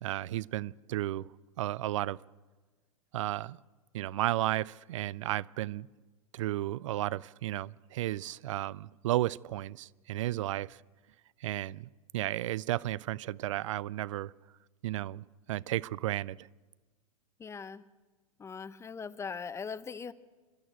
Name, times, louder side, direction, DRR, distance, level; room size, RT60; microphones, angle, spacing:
voice 1, 0.0-1.3 1.6-2.2 3.1-3.6 3.9-5.9 6.3-10.8 11.4-14.3 14.8-16.5, right 14 dB, 60° right, 0.5 m, -33 dB
voice 2, 17.4-17.8 18.4-20.1, left 5 dB, 15° left, 0.8 m, -40 dB
28.5 x 12.5 x 8.2 m
figure-of-eight pair, 100°, 18 cm